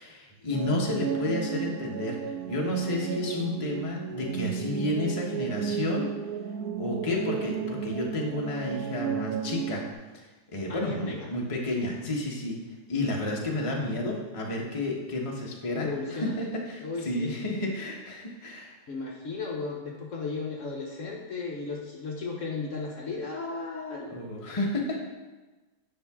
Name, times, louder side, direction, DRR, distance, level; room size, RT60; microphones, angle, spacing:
voice 1, 0.0-6.1 6.8-9.8 10.1-10.2 10.5-12.6 12.9-18.8 24.1-25.0, left 2 dB, 25° left, -2 dB, 1.0 m, -31 dB
sound 1, 0.5-9.9, right 7 dB, 75° right, 1.0 m, -33 dB
voice 2, 10.7-11.2 15.7-16.3 16.8-17.4 18.9-24.1, left 4 dB, 55° left, -1 dB, 1.2 m, -35 dB
9.6 x 5.8 x 3.6 m, 1.2 s
omnidirectional pair, 1.7 m